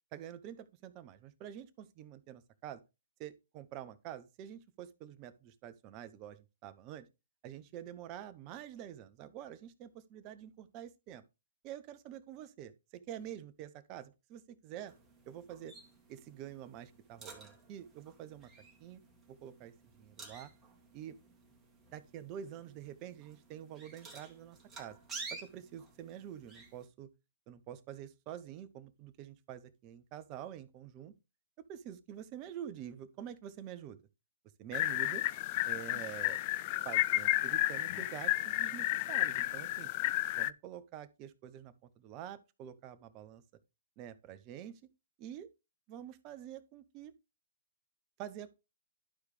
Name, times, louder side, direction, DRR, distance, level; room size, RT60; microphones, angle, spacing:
voice 1, 0.1-2.8 3.2-7.1 7.4-11.2 11.6-14.9 15.3-15.7 16.1-18.5 18.8-19.0 19.3-20.5 20.9-21.1 21.9-25.0 25.3-27.1 27.5-31.1 31.7-34.0 34.6-35.2 35.6-36.4 36.8-39.9 40.4-43.4 44.0-44.7 45.2-45.5 45.9-47.1 48.2-48.5, right 10 dB, 30° right, 0.8 m, -47 dB
sound 1, 14.9-26.9, right 4 dB, 15° right, 2.0 m, -52 dB
sound 2, 34.7-40.5, left 17 dB, 40° left, 0.3 m, -32 dB
11.5 x 4.8 x 3.3 m
hypercardioid pair, 130°, 0 cm